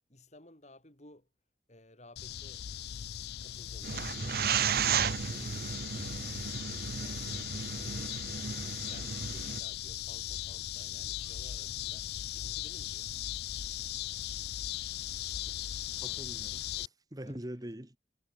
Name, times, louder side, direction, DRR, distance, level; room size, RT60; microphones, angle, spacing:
voice 1, 0.1-1.3 1.7-2.7 3.4-6.3 6.7-8.5 8.9-12.1 12.3-13.1 17.3-17.4, left 1 dB, 40° left, 4.6 m, -57 dB
sound 1, 2.2-16.9, left 12 dB, 60° left, 0.4 m, -39 dB
sound 2, 3.8-9.6, right 7 dB, 60° right, 0.7 m, -34 dB
voice 2, 16.0-18.0, right 1 dB, 20° right, 1.5 m, -44 dB
head